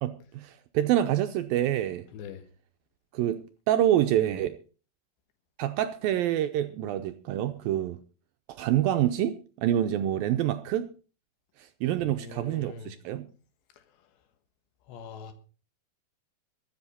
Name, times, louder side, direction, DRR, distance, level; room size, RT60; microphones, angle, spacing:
voice 1, 0.0-2.0 3.1-4.6 5.6-8.0 8.5-10.9 11.8-13.3, right 12 dB, 80° right, 2.1 m, -27 dB
voice 2, 2.1-2.5 12.0-12.9 14.9-15.3, left 5 dB, 85° left, 3.5 m, -42 dB
23.5 x 8.0 x 4.2 m
omnidirectional pair, 5.0 m